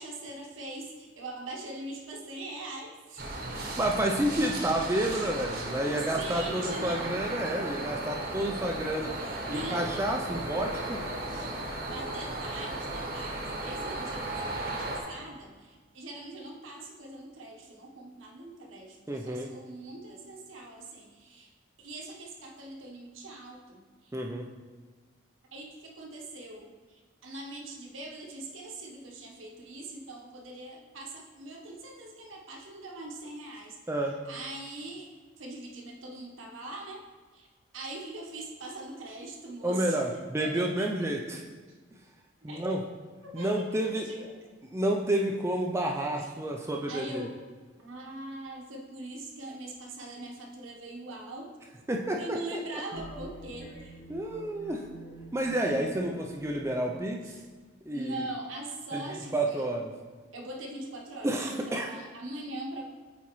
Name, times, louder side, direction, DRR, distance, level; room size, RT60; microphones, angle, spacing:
voice 1, 0.0-3.3 5.0-5.3 5.8-7.0 7.3-7.4 9.2-10.0 11.1-11.5 11.9-21.5 21.8-24.1 25.5-33.8 34.2-37.0 37.3-37.5 37.7-40.0 40.4-41.1 42.5-42.8 43.2-44.3 46.2-46.3 46.9-47.3 47.8-51.5 52.2-54.0 57.2-57.4 57.9-59.7 60.3-62.8, right 2 dB, 85° right, 0 dB, 1.0 m, -42 dB
walkingcritter roadnoise, 3.2-15.0, right 2 dB, 50° right, 0.9 m, -35 dB
voice 2, 3.8-9.2 9.5-11.0 19.1-19.5 24.1-24.5 33.9-34.2 39.6-41.4 42.4-42.9 43.3-44.1 44.7-47.3 51.9-52.6 54.1-54.8 55.3-57.2 57.9-58.2 58.9-59.9 61.2-61.9, right 1 dB, 15° right, 1 dB, 0.3 m, -30 dB
sound 1, 52.9-57.6, right 2 dB, 80° left, 1.2 m, -48 dB
8.3 x 4.2 x 3.0 m, 1.4 s
head